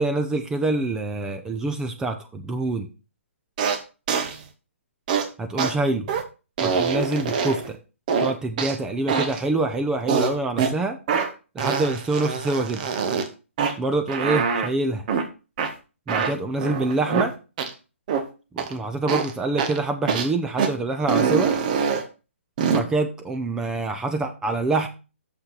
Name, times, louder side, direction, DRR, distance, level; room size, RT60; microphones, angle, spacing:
voice 1, 0.0-2.9 5.4-6.1 6.6-7.8 8.2-11.0 11.5-12.9 13.8-15.1 16.1-17.3 18.5-21.6 22.7-24.9, right 2 dB, 10° right, 6 dB, 0.6 m, -26 dB
sound 1, 3.6-3.8 4.1-4.4 5.1-5.3 5.6-5.7 6.1-6.2 6.6-7.7 8.1-8.8 9.1-9.4 10.1-10.7 11.1-11.3 11.6-13.3 13.6-13.7 14.1-14.7 15.1-15.2 15.6-15.7 16.1-17.3 17.6-17.7 18.1-18.2 18.6-18.7 19.1-19.3 19.6-19.8 20.1-20.3 20.6-20.7 21.1-22.0 22.6-22.8, right 6 dB, 35° right, 1.1 m, -24 dB
6.8 x 5.7 x 5.8 m, 0.33 s
figure-of-eight pair, 135°, 7 cm